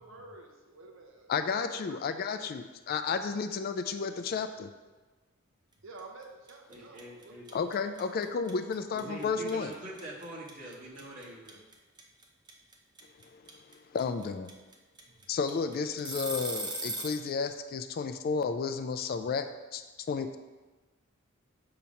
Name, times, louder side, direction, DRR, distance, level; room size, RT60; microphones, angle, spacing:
voice 1, 0.0-2.6 5.8-7.3 7.7-8.5 15.1-15.4, right 2 dB, 65° right, 1 dB, 0.8 m, -52 dB
voice 2, 1.3-4.7 7.5-9.7 13.3-13.4 13.9-14.5 15.3-19.8 20.1-20.4, left 5 dB, 45° left, 9 dB, 0.3 m, -32 dB
sound 1, 6.0-6.2 6.5-17.2, right 1 dB, 20° right, 0.6 m, -38 dB
voice 3, 6.7-7.5 8.9-11.6, right 1 dB, 40° right, -6 dB, 1.5 m, -44 dB
6.9 x 2.9 x 5.2 m, 1.2 s
head